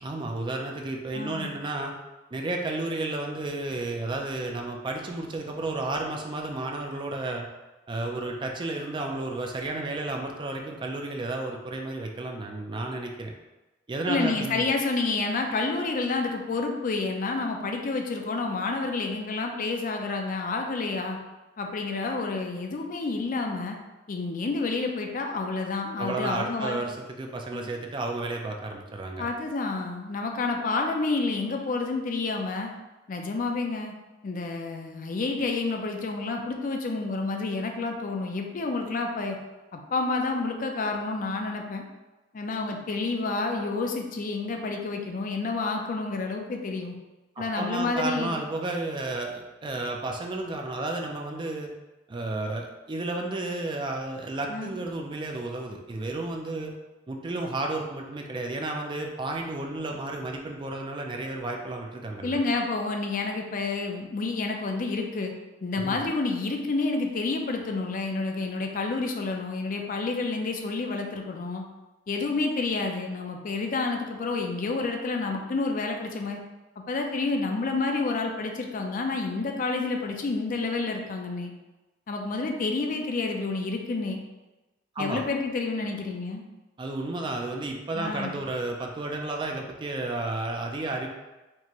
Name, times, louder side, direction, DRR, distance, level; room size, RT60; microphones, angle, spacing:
voice 1, 0.0-1.9 2.3-7.5 7.9-13.3 13.9-14.7 26.0-29.3 47.4-51.7 52.1-56.7 57.1-62.4 65.8-66.0 85.0-85.2 86.8-91.1, right 2 dB, 25° right, 2 dB, 0.4 m, -32 dB
voice 2, 1.1-1.5 14.1-21.2 21.6-23.8 24.1-26.8 27.5-27.7 29.2-32.7 33.1-33.9 34.2-39.4 39.7-41.8 42.3-46.9 47.4-48.4 54.5-54.8 62.2-65.3 65.6-71.6 72.1-76.4 76.8-81.5 82.1-84.2 85.0-86.4 87.9-88.4, left 3 dB, 45° left, 3 dB, 0.4 m, -29 dB
4.5 x 2.5 x 2.9 m, 1.1 s
head